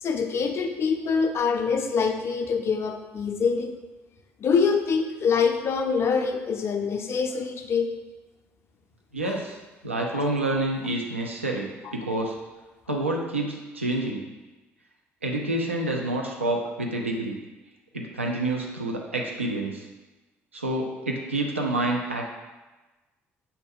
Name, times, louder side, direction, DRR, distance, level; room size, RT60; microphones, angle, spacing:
voice 1, 0.0-3.7 4.4-7.9 11.8-11.9, left 5 dB, 40° left, 5 dB, 0.4 m, -25 dB
voice 2, 9.1-9.6 9.8-12.4 12.9-14.2 15.2-17.4 17.9-19.9 20.5-22.3, right 2 dB, 90° right, 0 dB, 0.4 m, -28 dB
5.4 x 2.2 x 3.5 m, 1.2 s
figure-of-eight pair, 50°, 7 cm